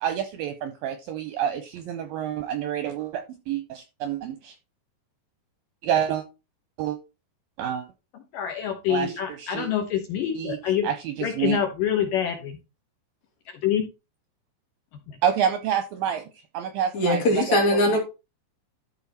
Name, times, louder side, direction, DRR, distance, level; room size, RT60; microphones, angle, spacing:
voice 1, 0.0-4.6 5.8-6.2 6.8-7.0 7.6-7.9 8.9-9.7 10.4-10.6 10.8-11.6 15.2-16.2 16.5-18.0, right 9 dB, 80° right, 9 dB, 2.1 m, -28 dB
voice 2, 8.1-10.9 11.2-12.6 13.5-13.8 15.1-15.2, left 9 dB, 70° left, 4 dB, 2.4 m, -26 dB
voice 3, 16.9-18.0, left 1 dB, 45° left, 1 dB, 3.2 m, -21 dB
13.0 x 4.6 x 4.2 m, 0.28 s
omnidirectional pair, 4.9 m